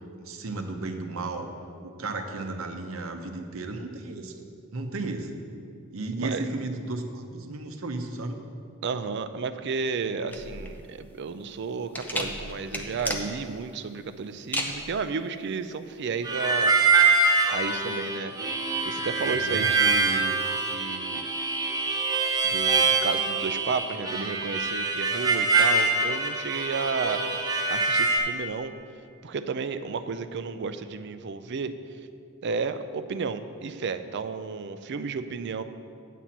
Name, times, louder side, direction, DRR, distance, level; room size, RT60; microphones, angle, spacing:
voice 1, 0.2-1.5 1.8-5.3 5.9-8.4 19.2-19.7, right 2 dB, 80° right, 5 dB, 0.8 m, -34 dB
voice 2, 8.8-16.7 17.5-18.3 18.8-21.3 22.4-27.2 27.7-28.7 29.2-31.7 32.4-35.6, right 5 dB, 55° right, 11 dB, 0.4 m, -32 dB
sound 1, 10.3-17.8, left 1 dB, 10° left, 0.7 m, -35 dB
Harmonica, 16.2-28.2, right 3 dB, 20° right, 0.9 m, -24 dB
9.2 x 4.3 x 7.3 m, 2.4 s
head